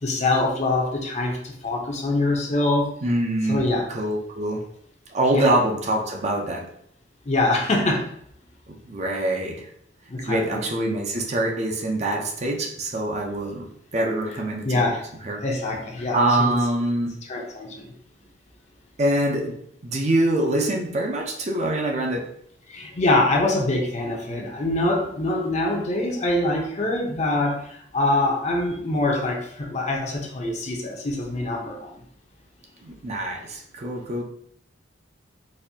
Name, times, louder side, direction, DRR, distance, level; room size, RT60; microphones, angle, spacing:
voice 1, 0.0-2.9 3.5-3.9 5.3-5.5 7.3-8.1 10.1-10.6 14.6-15.0 15.4-16.5 17.3-17.9 22.7-31.9, left 2 dB, 40° left, 0 dB, 0.7 m, -24 dB
voice 2, 3.0-4.7 5.1-6.7 8.7-9.7 10.2-13.7 13.9-14.9 15.2-15.4 16.1-17.2 19.0-19.6 19.8-22.3 32.8-34.2, right 1 dB, 40° right, 1 dB, 0.6 m, -24 dB
4.1 x 2.6 x 2.7 m, 0.68 s
head